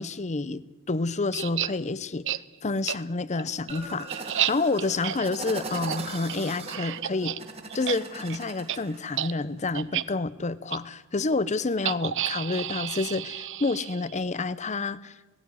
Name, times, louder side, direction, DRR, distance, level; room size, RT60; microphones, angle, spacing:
voice 1, 0.0-7.4 7.7-15.2, left 3 dB, 35° left, 17 dB, 0.7 m, -29 dB
sound 1, 1.3-1.7 2.2-2.4 2.9-3.0 3.4-7.4 7.7-8.4 8.7-8.8 9.1-9.3 9.7-10.0 10.7-10.8 11.8-14.2, right 11 dB, 60° right, 0.6 m, -31 dB
sound 2, 3.7-9.3, right 3 dB, 30° right, 2.0 m, -39 dB
17.5 x 16.0 x 9.6 m, 1.2 s
head